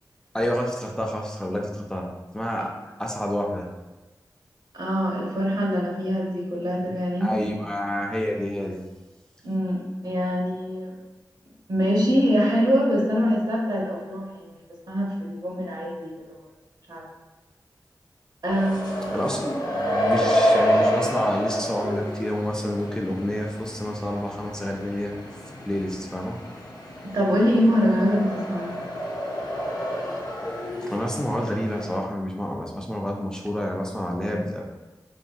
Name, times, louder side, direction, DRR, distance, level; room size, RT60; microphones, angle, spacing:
voice 1, 0.3-2.1 2.3-2.7 3.0-3.7 7.2-8.8 19.1-25.1 25.7-26.4 30.8-34.7, equal, 10° left, 0 dB, 0.4 m, -28 dB
voice 2, 4.7-7.5 9.4-10.9 11.7-14.5 14.9-16.1 16.9-17.0 18.4-19.2 27.1-28.8, equal, 65° right, -4 dB, 0.8 m, -24 dB
sound 1, 18.5-32.0, equal, 70° left, 0.5 m, -28 dB
2.7 x 2.6 x 2.3 m, 1.1 s
cardioid pair, 40°, 7 cm